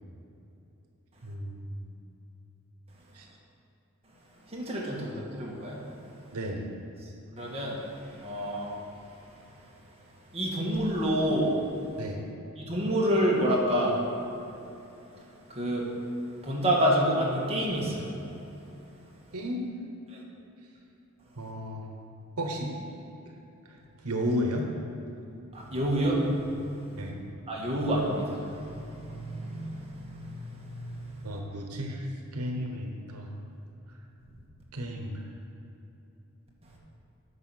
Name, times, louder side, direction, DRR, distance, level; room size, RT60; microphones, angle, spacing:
voice 1, 1.2-1.9 3.1-3.3 6.3-6.7 12.0-12.2 19.3-19.6 21.4-21.8 22.4-22.7 24.0-24.7 27.0-27.2 31.2-33.3 34.7-35.3, equal, 90° right, 2 dB, 1.0 m, -33 dB
voice 2, 4.5-5.8 7.3-9.1 9.5-9.6 10.3-11.6 12.6-14.0 15.5-15.9 16.4-18.1 20.1-20.2 25.5-27.1 27.5-31.3 36.6-36.8, equal, 25° right, -3 dB, 1.6 m, -29 dB
9.8 x 5.6 x 6.3 m, 2.9 s
head